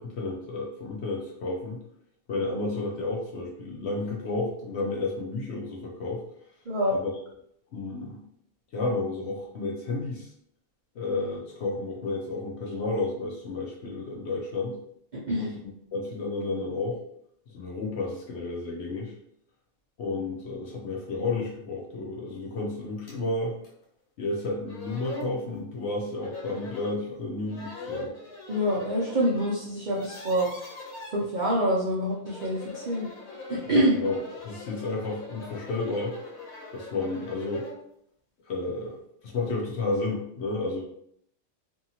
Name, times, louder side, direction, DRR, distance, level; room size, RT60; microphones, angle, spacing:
voice 1, 0.0-1.8 2.3-6.2 6.9-7.1 7.7-8.2 8.7-10.3 11.0-14.8 15.4-17.0 17.5-19.1 20.0-23.5 24.2-28.1 33.7-34.2 34.4-36.2 36.7-37.7 38.5-40.8, left 2 dB, 60° left, -2 dB, 0.7 m, -31 dB
voice 2, 6.7-7.0 15.3-15.5 28.5-30.5 31.1-33.1 33.5-33.9, equal, 60° right, -6 dB, 0.5 m, -26 dB
sound 1, 23.1-23.2 23.6-23.7 24.4-24.5 24.7-25.3 26.2-27.0 27.5-29.5 29.8-31.1 32.1-37.8, left 2 dB, 80° left, 1.2 m, -41 dB
2.7 x 2.7 x 2.7 m, 0.69 s
omnidirectional pair, 1.5 m